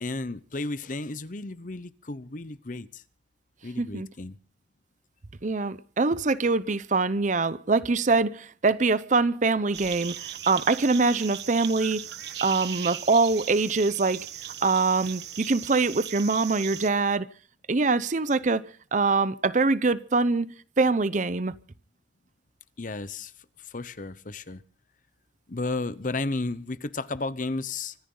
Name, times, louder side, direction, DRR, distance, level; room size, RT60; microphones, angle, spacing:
voice 1, 0.0-3.0 3.6-4.4 22.8-23.3 23.6-24.6 25.5-27.9, left 3 dB, 45° left, 0.8 m, -33 dB
voice 2, 3.8-4.1 5.4-12.0 12.4-14.3 14.6-17.3 17.7-18.6 18.9-21.5, right 3 dB, 45° right, 0.7 m, -24 dB
sound 1, 9.7-16.9, right 10 dB, 65° right, 1.2 m, -38 dB
25.0 x 14.5 x 3.9 m
head